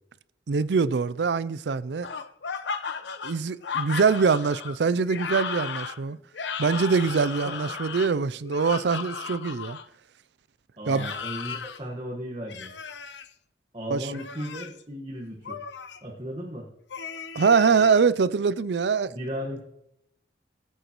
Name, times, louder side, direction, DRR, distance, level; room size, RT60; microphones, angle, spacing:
voice 1, 0.5-2.1 3.2-6.2 6.6-9.8 10.9-11.1 13.9-14.0 17.3-19.1, right 5 dB, 75° right, 0.5 m, -23 dB
sound 1, 2.0-9.9 10.9-11.8 12.5-13.3 14.1-14.8 15.5-16.0 16.9-18.0, left 6 dB, 85° left, 0.8 m, -35 dB
voice 2, 10.8-12.7 13.7-15.6 16.0-16.7 19.1-19.6, equal, 30° right, 1.5 m, -35 dB
19.5 x 8.2 x 3.1 m
head